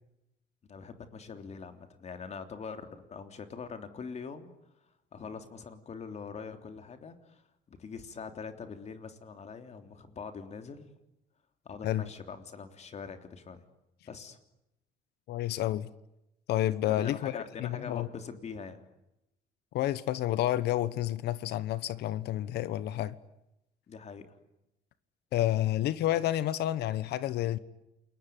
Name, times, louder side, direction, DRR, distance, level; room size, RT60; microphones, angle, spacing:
voice 1, 0.7-4.5 5.1-7.4 7.7-10.9 11.6-13.6 14.0-14.4 16.8-18.8 23.9-24.3, left 5 dB, 40° left, 3.4 m, -43 dB
voice 2, 15.3-15.9 16.5-18.1 19.7-23.1 25.3-27.6, left 13 dB, 75° left, 1.3 m, -30 dB
29.0 x 21.5 x 9.5 m
cardioid pair, 110°, 17 cm